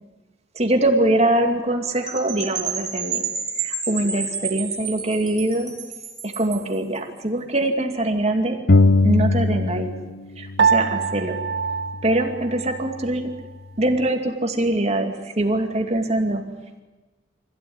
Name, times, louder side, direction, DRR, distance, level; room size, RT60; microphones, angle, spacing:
voice 1, 0.5-3.2 3.6-5.7 6.4-8.6 9.0-9.9 10.4-11.4 12.0-13.3 13.8-16.4, right 1 dB, 35° right, 3 dB, 2.5 m, -23 dB
Percussion / Wind chime, 2.1-6.7, right 6 dB, 20° right, 5.2 m, -30 dB
sound 1, 8.7-10.2 10.4-12.2, left 3 dB, 55° left, 0.8 m, -21 dB
Piano, 10.6-13.1, right 6 dB, 85° right, 0.7 m, -24 dB
25.5 x 16.0 x 9.7 m, 1.2 s
head